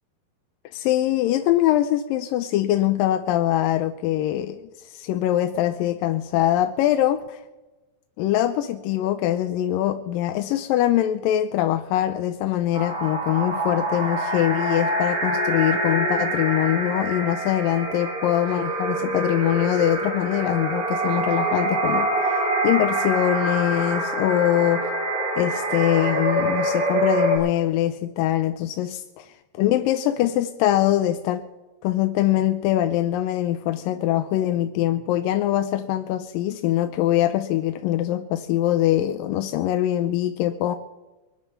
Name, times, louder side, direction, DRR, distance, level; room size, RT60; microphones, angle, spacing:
voice 1, 0.7-7.4 8.2-24.9 25.4-31.5 31.8-40.8, left 13 dB, 85° left, 2.4 m, -23 dB
sound 1, 12.7-27.4, right 2 dB, 40° right, 6.8 m, -25 dB
24.0 x 9.5 x 5.8 m
omnidirectional pair, 4.0 m